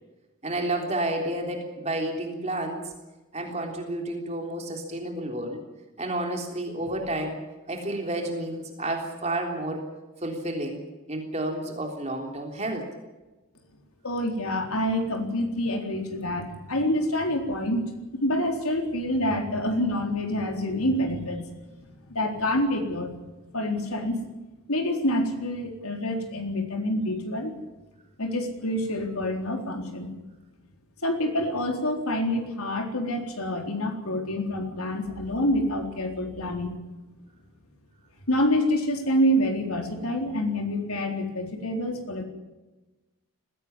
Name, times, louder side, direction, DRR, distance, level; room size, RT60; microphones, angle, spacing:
voice 1, 0.4-2.8 3.3-5.6 6.0-7.4 7.7-9.8 10.2-10.8 11.1-12.9, right 1 dB, 30° right, 2 dB, 3.5 m, -30 dB
voice 2, 14.0-21.5 22.1-23.1 23.5-24.2 24.7-27.6 28.2-30.1 31.0-36.8 38.3-42.2, left 1 dB, 85° left, 4 dB, 4.0 m, -27 dB
20.0 x 16.5 x 9.9 m, 1.1 s
head